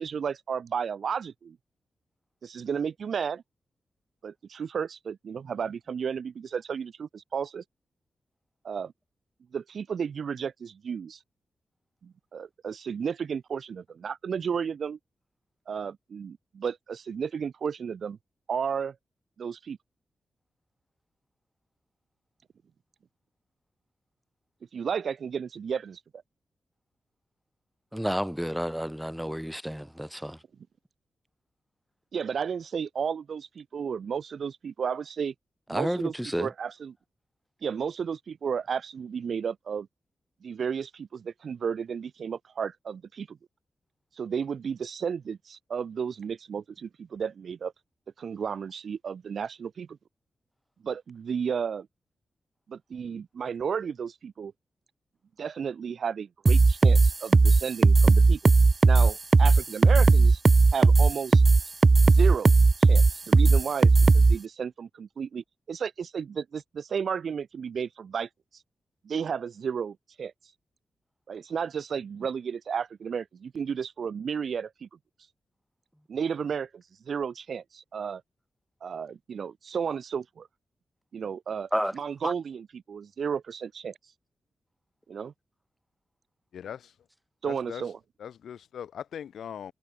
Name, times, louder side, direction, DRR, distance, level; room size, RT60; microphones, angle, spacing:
voice 1, 0.0-1.6 2.4-3.4 4.2-7.6 8.6-8.9 9.5-11.2 12.0-15.0 15.7-18.2 18.5-18.9 19.4-19.8 24.7-26.0 32.1-35.3 35.7-36.9 37.6-39.9 40.4-43.4 44.2-47.7 48.2-50.0 50.8-51.9 52.7-54.5 55.4-58.4 58.8-60.4 60.7-61.4 62.1-62.5 62.8-68.3 69.0-70.3 71.3-74.9 76.1-78.2 78.8-80.5 81.1-83.9 85.1-85.3 87.4-88.0, right 6 dB, 70° right, 4.9 m, -33 dB
voice 2, 27.9-30.4 35.7-36.5 81.7-81.9 82.2-82.3, equal, 5° right, 2.5 m, -30 dB
sound 1, 56.5-64.4, right 3 dB, 45° right, 0.9 m, -17 dB
voice 3, 86.5-86.9 87.4-87.9 88.2-89.7, left 9 dB, 85° left, 5.1 m, -40 dB
cardioid pair, 45°, 0 cm